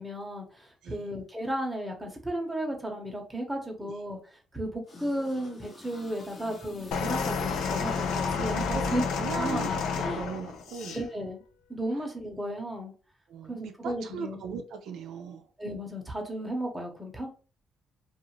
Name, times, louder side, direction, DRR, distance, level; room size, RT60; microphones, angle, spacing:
voice 1, 0.0-4.2 4.5-9.0 9.3-9.7 10.0-10.2 10.9-11.4 11.7-12.9 13.5-14.4 15.6-17.3, right 1 dB, 5° right, 1 dB, 0.9 m, -34 dB
sound 1, 4.9-9.2, equal, 40° left, 0.9 m, -43 dB
sound 2, 6.9-11.0 11.9-12.0, left 6 dB, 85° left, 0.5 m, -30 dB
voice 2, 8.5-9.8 10.1-11.0 11.9-12.0 13.3-15.4, right 6 dB, 80° right, 6 dB, 0.4 m, -39 dB
2.4 x 2.4 x 3.0 m, 0.36 s
cardioid pair, 90°, 0 cm